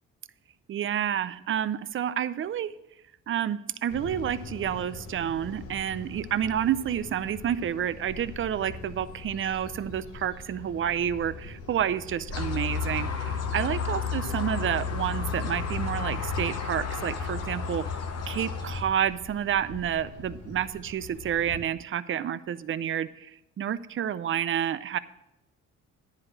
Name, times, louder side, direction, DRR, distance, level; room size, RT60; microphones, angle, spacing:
voice 1, 0.7-2.7 3.3-17.8 18.3-23.3 23.6-25.0, right 9 dB, 45° right, 15 dB, 0.5 m, -29 dB
sound 1, 3.9-21.6, left 3 dB, 75° left, 1.3 m, -43 dB
sound 2, 12.3-18.8, left 5 dB, 55° left, 1.1 m, -32 dB
9.8 x 4.8 x 7.5 m, 0.87 s
cardioid pair, 90°, 30 cm